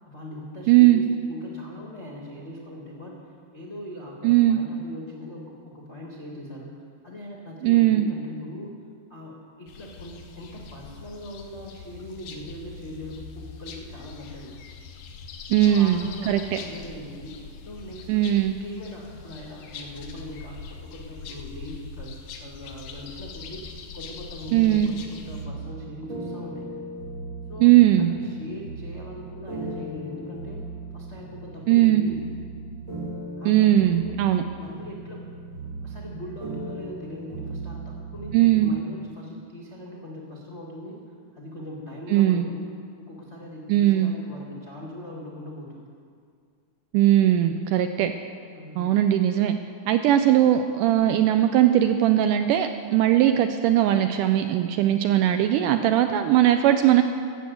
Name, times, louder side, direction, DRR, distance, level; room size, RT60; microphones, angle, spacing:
voice 1, 0.0-8.7 9.1-14.5 15.6-26.7 27.5-30.6 30.9-32.3 33.4-34.2 34.6-35.4 35.8-41.0 41.3-42.8 43.1-45.9 48.5-48.9, left 1 dB, 90° left, -3 dB, 0.6 m, -40 dB
voice 2, 0.7-1.0 4.2-4.6 7.6-8.1 15.5-16.6 18.1-18.5 24.5-24.9 27.6-28.1 31.7-32.0 33.5-34.4 38.3-38.7 42.1-42.5 43.7-44.1 46.9-48.1 48.8-49.6 49.9-57.0, right 12 dB, 80° right, 7 dB, 1.9 m, -19 dB
sound 1, 9.7-25.5, left 5 dB, 70° left, 2.2 m, -42 dB
sound 2, 24.4-38.6, right 2 dB, 35° right, 2.3 m, -37 dB
13.5 x 7.9 x 7.8 m, 2.2 s
omnidirectional pair, 4.1 m